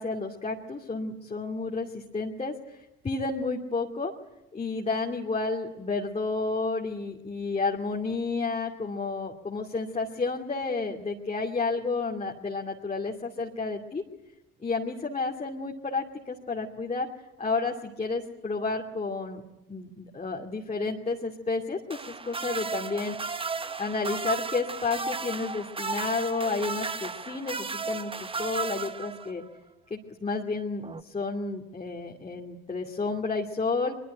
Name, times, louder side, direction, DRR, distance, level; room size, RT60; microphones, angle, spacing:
voice 1, 0.0-2.8 3.0-4.1 4.5-14.0 14.6-17.1 17.4-19.4 19.7-23.2 23.8-29.4 29.9-33.9, left 3 dB, 20° left, -1 dB, 2.6 m, -31 dB
sound 1, 21.9-29.5 30.8-31.0, right 4 dB, 20° right, 1.2 m, -34 dB
24.0 x 23.0 x 9.2 m, 0.94 s
figure-of-eight pair, 55°, 30 cm